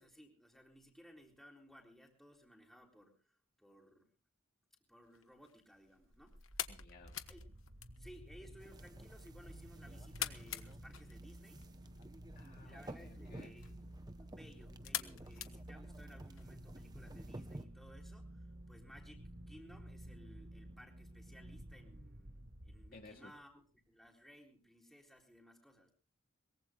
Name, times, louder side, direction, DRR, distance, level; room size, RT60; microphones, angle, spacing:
voice 1, 0.0-4.1 4.9-6.4 7.3-7.4 8.0-11.6 12.6-13.7 14.2-25.9, equal, ahead, 1 dB, 3.7 m, -60 dB
sound 1, 5.0-16.4, left 11 dB, 70° left, 1.2 m, -48 dB
sound 2, 6.0-23.4, right 1 dB, 60° right, 2.0 m, -53 dB
voice 2, 6.7-7.2 12.3-13.6 22.9-23.3, left 2 dB, 40° left, 1 dB, 2.3 m, -57 dB
sound 3, 8.6-17.7, right 1 dB, 20° right, 0.8 m, -54 dB
22.5 x 22.0 x 2.3 m, 0.34 s
head